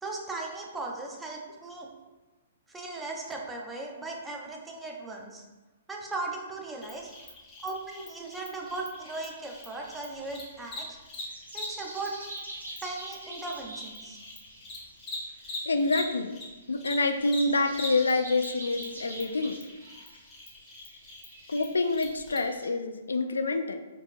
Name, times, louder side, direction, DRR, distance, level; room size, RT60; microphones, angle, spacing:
voice 1, 0.0-1.9 2.7-5.4 5.9-7.1 7.6-11.0 11.5-12.1 12.8-14.2, right 3 dB, 10° right, -1 dB, 0.7 m, -37 dB
Cricket, 6.8-16.4 16.7-22.4, left 2 dB, 15° left, 1.3 m, -43 dB
sound 1, 9.0-22.7, right 1 dB, 85° right, 1.0 m, -47 dB
voice 2, 15.7-16.3 16.7-19.6 21.5-23.8, left 3 dB, 75° left, 7 dB, 0.3 m, -27 dB
4.4 x 4.0 x 2.6 m, 1.1 s
figure-of-eight pair, 120°, 0 cm